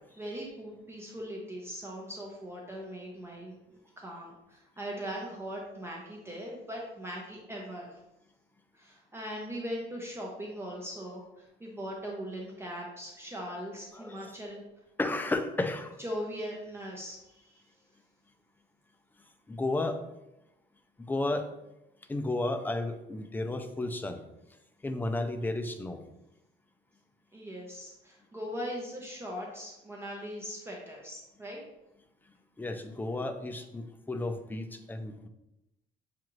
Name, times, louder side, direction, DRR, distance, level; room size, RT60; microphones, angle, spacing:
voice 1, 0.1-8.0 8.7-14.6 16.0-17.6 27.3-31.6, equal, 15° right, -2 dB, 0.8 m, -40 dB
voice 2, 13.9-14.3 15.0-16.0 19.5-20.0 21.0-21.5 22.1-24.2 24.8-26.0 32.6-35.3, left 2 dB, 10° left, 7 dB, 0.4 m, -33 dB
7.0 x 2.5 x 3.1 m, 0.91 s
cardioid pair, 110°, 17 cm